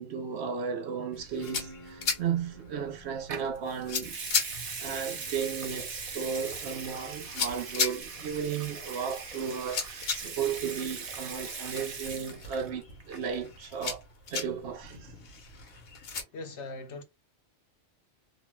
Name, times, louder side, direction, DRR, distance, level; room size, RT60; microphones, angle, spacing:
voice 1, 0.0-4.2 4.8-14.0 14.3-15.1, right 7 dB, 70° right, 0.8 m, -34 dB
sound 1, 1.1-16.2, left 5 dB, 90° left, 1.3 m, -38 dB
Acoustic guitar / Strum, 1.4-6.7, right 1 dB, 25° left, 0.4 m, -52 dB
Water tap faucet / Sink (filling or washing) / Liquid, 3.3-3.5 4.0-12.7 13.0-13.3, right 4 dB, 40° right, 0.6 m, -40 dB
voice 2, 16.3-17.0, left 3 dB, 70° left, 1.0 m, -40 dB
3.0 x 2.1 x 3.0 m
omnidirectional pair, 1.3 m